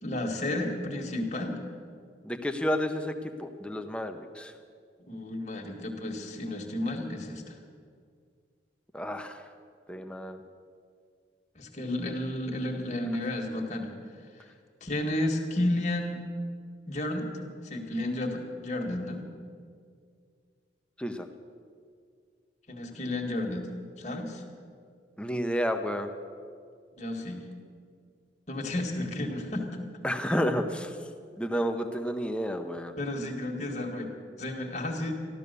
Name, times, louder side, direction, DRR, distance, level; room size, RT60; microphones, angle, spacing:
voice 1, 0.0-1.6 5.1-7.5 11.6-13.9 14.8-16.2 16.9-17.3 17.6-19.3 22.7-23.7 24.0-24.4 27.0-27.4 28.5-29.7 33.0-34.1 34.4-35.1, left 1 dB, 40° left, 2 dB, 1.8 m, -32 dB
voice 2, 2.2-4.5 8.9-9.4 9.9-10.4 21.0-21.3 25.2-26.1 30.0-30.9 31.4-33.0, equal, 5° left, 6 dB, 0.8 m, -31 dB
14.0 x 12.5 x 6.9 m, 2.2 s
head